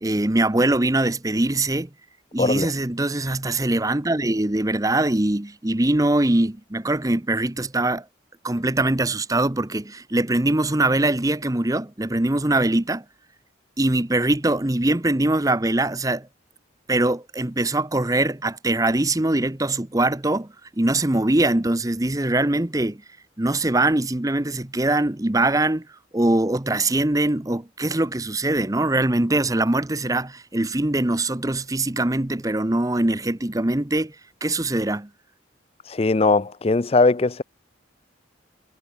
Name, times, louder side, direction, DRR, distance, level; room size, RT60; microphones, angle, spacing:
voice 1, 0.0-1.9 2.3-8.0 8.4-13.0 13.8-16.3 16.9-20.5 20.8-23.0 23.4-25.8 26.1-34.1 34.4-35.1, right 2 dB, 20° right, 0.9 m, -22 dB
voice 2, 2.4-2.7 35.9-37.4, left 3 dB, 30° left, 0.5 m, -20 dB
head